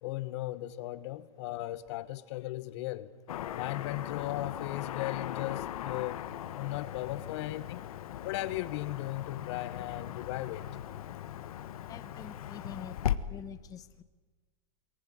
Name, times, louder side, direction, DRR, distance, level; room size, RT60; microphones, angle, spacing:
voice 1, 0.0-3.1 3.5-6.3 6.6-7.9 8.2-10.7, left 16 dB, 50° left, 1.1 m, -37 dB
Car passing by / Traffic noise roadway noise, 3.3-13.2, left 11 dB, 75° left, 1.3 m, -38 dB
voice 2, 11.9-14.0, left 8 dB, 20° left, 1.0 m, -46 dB
22.5 x 19.0 x 10.0 m
supercardioid pair, 150°, 19 cm